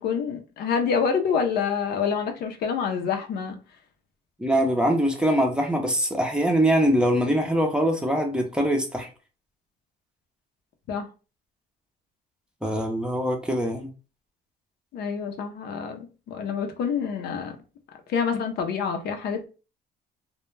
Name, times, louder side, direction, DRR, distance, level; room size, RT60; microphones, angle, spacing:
voice 1, 0.0-3.6 10.9-11.1 14.9-17.6 18.1-19.5, left 6 dB, 70° left, 0.6 m, -27 dB
voice 2, 4.4-9.1 12.6-13.9, equal, 5° right, 0.5 m, -23 dB
2.2 x 2.1 x 3.1 m
cardioid pair, 110°, 17 cm